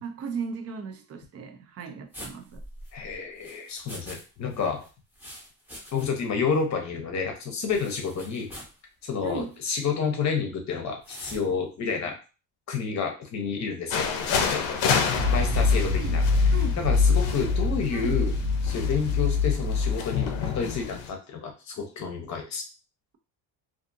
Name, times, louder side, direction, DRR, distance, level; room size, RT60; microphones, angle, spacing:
voice 1, 0.0-2.6 9.2-9.6 15.9-16.2 16.5-16.8 17.9-18.2, right 5 dB, 35° right, 0.4 m, -36 dB
sound 1, 2.1-4.2 4.5-6.3 6.6-6.7 7.7-8.8 9.3-9.6 11.0-11.4, equal, 5° right, 0.8 m, -44 dB
voice 2, 2.9-4.8 5.9-8.5 9.0-12.1 12.7-14.8 15.3-16.2 16.8-18.3 18.6-22.6, left 5 dB, 35° left, 0.8 m, -30 dB
sound 2, 13.9-21.1, left 6 dB, 75° left, 0.6 m, -30 dB
sound 3, 15.1-20.8, left 4 dB, 70° right, 0.9 m, -24 dB
2.6 x 2.4 x 2.6 m
cardioid pair, 130°, 47 cm